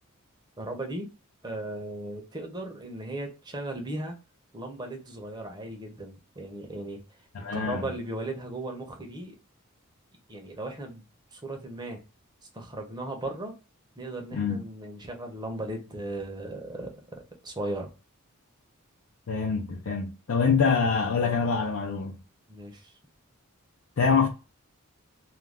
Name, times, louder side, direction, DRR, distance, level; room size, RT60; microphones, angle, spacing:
voice 1, 0.6-1.1 1.4-4.2 4.5-7.0 7.4-9.4 10.3-11.0 11.3-12.0 12.5-13.5 14.0-16.9 17.4-17.9 22.5-22.9, right 2 dB, 20° right, 0.6 m, -36 dB
voice 2, 7.3-7.9 14.3-14.6 19.3-22.2 24.0-24.3, left 5 dB, 70° left, 0.5 m, -25 dB
2.4 x 2.2 x 3.3 m
head